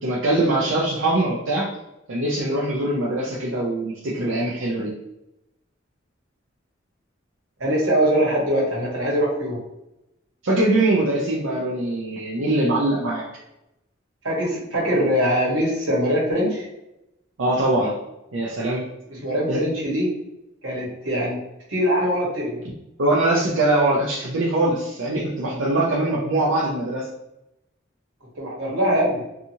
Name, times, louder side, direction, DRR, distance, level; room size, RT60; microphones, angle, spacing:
voice 1, 0.0-1.7 2.1-4.9 10.4-13.3 17.4-17.9 18.3-18.9 19.5-19.6 23.0-27.1, right 2 dB, 70° right, -5 dB, 0.5 m, -22 dB
voice 2, 7.6-9.6 14.2-16.7 19.1-20.1 20.6-21.4 21.7-22.6 28.4-29.2, equal, 90° right, -4 dB, 1.1 m, -22 dB
2.7 x 2.4 x 2.8 m, 0.90 s
head